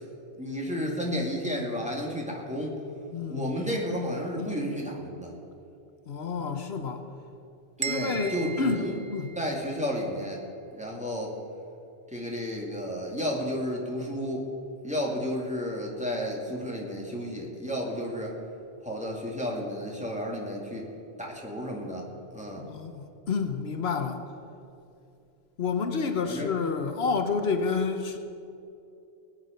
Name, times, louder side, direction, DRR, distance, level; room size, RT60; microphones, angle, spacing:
voice 1, 0.4-2.8 3.3-5.4 7.8-9.0 9.4-10.4 10.7-11.3 12.1-14.5 14.8-18.4 18.8-20.9 21.2-22.1 22.3-22.6 26.2-26.5, equal, 5° right, -2 dB, 2.3 m, -32 dB
voice 2, 3.1-3.5 4.4-4.5 6.1-7.1 7.9-8.8 9.1-9.3 22.5-24.2 25.6-28.2, left 5 dB, 80° left, 6 dB, 1.2 m, -29 dB
sound 1, 7.8-9.8, right 5 dB, 45° right, 0.7 m, -37 dB
20.0 x 9.5 x 5.2 m, 2.7 s
omnidirectional pair, 1.0 m